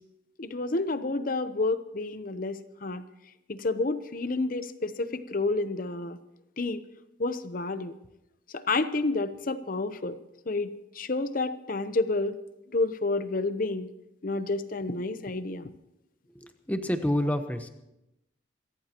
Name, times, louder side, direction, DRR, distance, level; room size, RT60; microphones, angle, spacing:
voice 1, 0.4-3.0 3.5-6.2 6.6-6.8 7.2-7.9 8.5-10.2 10.5-10.7 11.0-12.4 12.7-13.9 14.2-15.6, left 3 dB, 50° left, 11 dB, 0.8 m, -29 dB
voice 2, 16.4-17.7, left 1 dB, 10° left, 7 dB, 1.0 m, -28 dB
27.5 x 14.0 x 3.0 m, 0.89 s
head